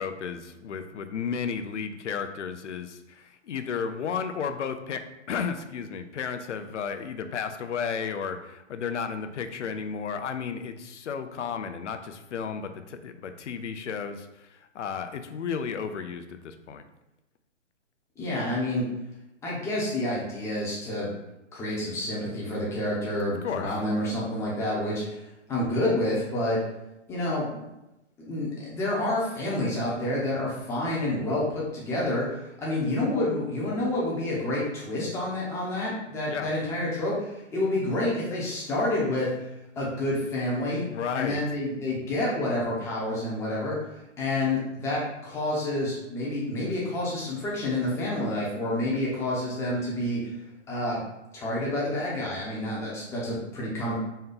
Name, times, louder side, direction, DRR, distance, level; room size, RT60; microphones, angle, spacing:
voice 1, 0.0-5.0 5.3-16.9 23.4-23.7 36.3-36.5 40.8-41.4, left 6 dB, 70° left, 8 dB, 0.6 m, -33 dB
voice 2, 18.2-18.9 19.4-21.1 21.5-25.2 25.5-26.6 27.1-27.6 28.2-39.3 39.8-40.8 41.1-43.8 44.2-50.4 50.7-51.0 51.3-53.9, left 1 dB, 5° left, -6 dB, 0.7 m, -28 dB
4.1 x 2.3 x 3.8 m, 0.94 s
hypercardioid pair, 140°, 37 cm